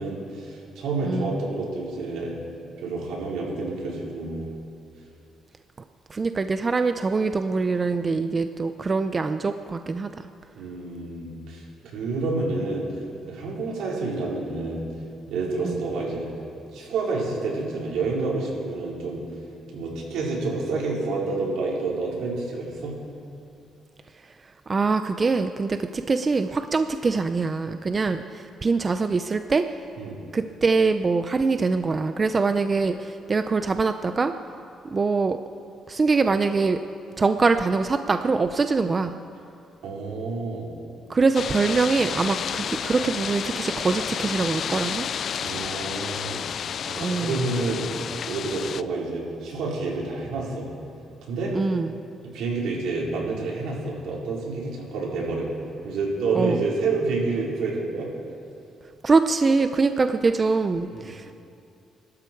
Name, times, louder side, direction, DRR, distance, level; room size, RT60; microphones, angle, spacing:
voice 1, 0.0-2.4 2.8-4.5 10.6-11.6 11.9-13.0 13.3-14.9 15.3-16.3 16.7-19.2 19.7-23.0 30.0-30.2 39.8-40.7 45.4-46.4 46.8-47.9 48.3-50.7 51.2-51.5 52.2-55.5 55.8-58.1 60.9-61.1, right 3 dB, 85° right, -4 dB, 4.7 m, -29 dB
voice 2, 6.1-10.2 15.6-15.8 24.7-29.7 30.3-34.3 34.8-35.4 35.9-36.8 37.2-39.2 41.1-45.1 47.0-47.4 51.5-52.0 56.3-56.6 59.0-61.4, right 4 dB, 35° right, 9 dB, 0.6 m, -23 dB
sound 1, 41.3-48.8, left 8 dB, 60° left, 0.4 m, -31 dB
23.0 x 13.0 x 4.7 m, 2.6 s
cardioid pair, 90°, 0 cm